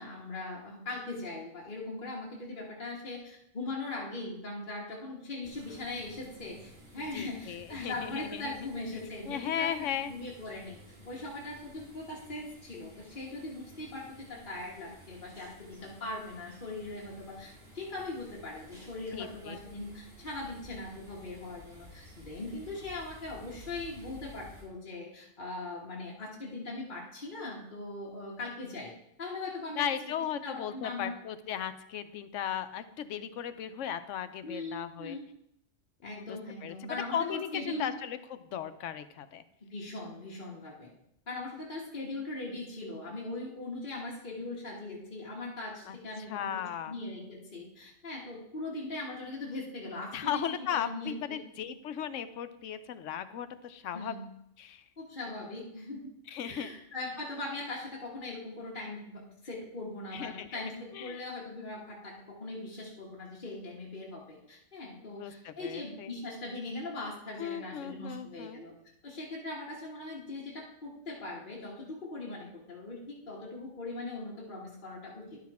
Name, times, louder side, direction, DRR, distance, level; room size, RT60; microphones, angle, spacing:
voice 1, 0.0-10.8 11.0-28.9 29.2-29.9 30.4-31.1 34.4-35.2 36.0-37.9 39.7-40.9 41.3-46.6 46.9-51.4 53.9-54.2 55.0-56.1 56.4-68.7 69.0-75.4, left 2 dB, 40° left, -4 dB, 1.7 m, -40 dB
sound 1, 5.4-24.6, equal, 30° right, 3.8 m, -53 dB
voice 2, 7.1-8.6 9.3-10.2 19.1-19.6 29.8-35.2 36.0-39.4 45.9-46.0 46.3-46.9 50.1-54.1 54.6-54.8 56.3-56.7 60.1-61.2 65.0-66.1 67.4-68.6, left 9 dB, 85° left, 11 dB, 1.0 m, -36 dB
11.0 x 6.3 x 4.2 m, 0.79 s
omnidirectional pair, 1.3 m